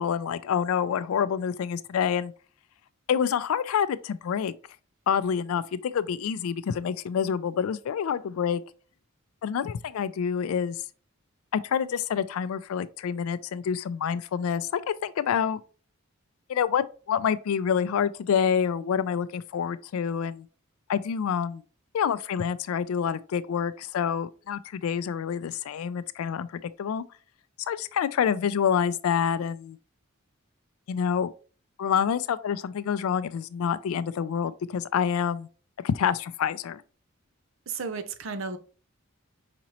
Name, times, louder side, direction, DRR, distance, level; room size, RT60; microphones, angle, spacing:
voice 1, 0.0-2.3 3.1-4.6 5.1-8.6 9.4-10.8 11.5-15.6 16.5-20.5 20.9-21.6 21.9-27.0 27.7-29.8 30.9-31.3 31.8-35.5 35.8-36.8, left 7 dB, 85° left, 0.3 m, -27 dB
voice 2, 37.7-38.6, right 4 dB, 65° right, 0.5 m, -33 dB
5.0 x 2.9 x 2.8 m
head